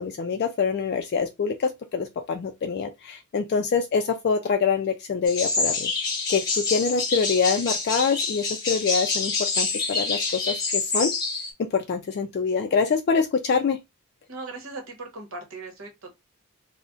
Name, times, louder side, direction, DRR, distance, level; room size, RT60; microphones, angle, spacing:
voice 1, 0.0-5.9 6.3-11.1 11.6-13.8, left 5 dB, 50° left, 0.3 m, -25 dB
sound 1, 5.2-11.5, left 4 dB, 20° left, 0.9 m, -27 dB
voice 2, 14.3-16.1, right 3 dB, 65° right, 1.0 m, -38 dB
2.5 x 2.1 x 3.6 m
head